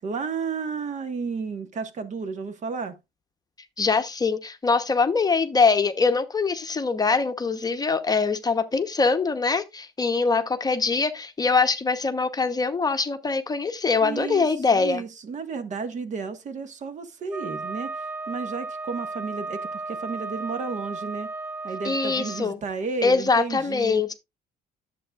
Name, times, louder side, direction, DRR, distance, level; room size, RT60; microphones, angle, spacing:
voice 1, 0.0-3.0 14.0-21.3 21.6-24.0, right 5 dB, 45° right, 1.5 m, -32 dB
voice 2, 3.8-15.0 21.8-22.6 23.0-24.1, left 4 dB, 25° left, 0.9 m, -23 dB
Wind instrument woodwind instrument, 17.3-22.4, right 3 dB, 15° right, 1.4 m, -34 dB
11.0 x 7.6 x 2.4 m
cardioid pair, 110°, 17 cm